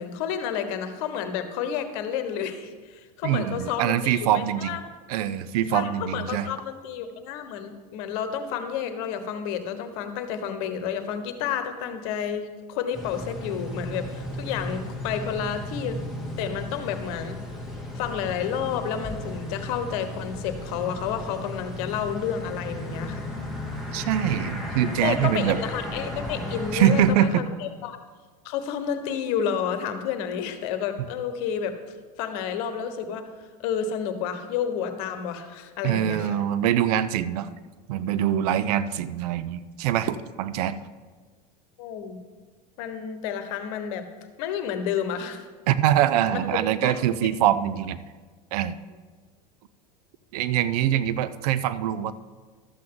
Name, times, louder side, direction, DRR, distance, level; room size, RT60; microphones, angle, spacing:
voice 1, 0.0-4.8 5.7-16.0 16.4-17.4 17.9-23.3 25.0-28.0 28.4-31.7 32.2-33.3 33.6-36.4 41.8-42.2 42.8-44.1 44.4-45.5 46.3-46.4 46.8-46.9, left 8 dB, 60° left, 9 dB, 1.1 m, -30 dB
voice 2, 3.2-4.8 5.1-6.5 23.9-25.6 26.7-27.4 31.0-31.1 35.8-37.5 37.9-40.8 45.7-48.0 48.5-48.8 50.3-52.1, right 11 dB, 65° right, 14 dB, 0.6 m, -24 dB
sound 1, 12.9-27.1, left 1 dB, ahead, 2.3 m, -35 dB
13.0 x 7.6 x 3.8 m, 1.4 s
hypercardioid pair, 95°, 21 cm